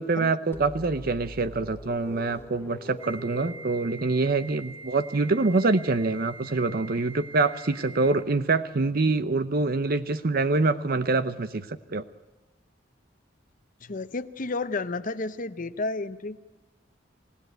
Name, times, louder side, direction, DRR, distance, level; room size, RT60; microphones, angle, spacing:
voice 1, 0.0-12.0, right 3 dB, 55° right, 12 dB, 0.7 m, -25 dB
sound 1, 0.5-5.3, equal, 15° left, 1.1 m, -44 dB
Wind instrument woodwind instrument, 3.0-8.4, right 3 dB, 30° right, 4.0 m, -44 dB
voice 2, 13.8-16.4, left 3 dB, 45° left, 11 dB, 0.8 m, -31 dB
28.0 x 16.5 x 9.2 m, 1.2 s
head